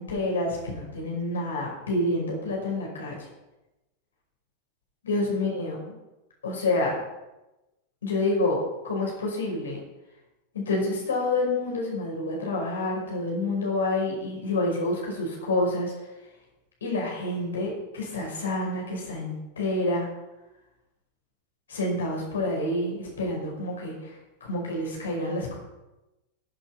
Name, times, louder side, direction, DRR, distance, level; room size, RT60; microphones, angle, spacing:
voice 1, 0.0-3.2 5.0-5.9 6.4-6.9 8.0-9.8 10.5-15.9 16.8-20.1 21.7-25.6, left 2 dB, 70° left, -1 dB, 5.4 m, -28 dB
14.5 x 8.0 x 5.8 m, 1.0 s
figure-of-eight pair, 90°, 0 cm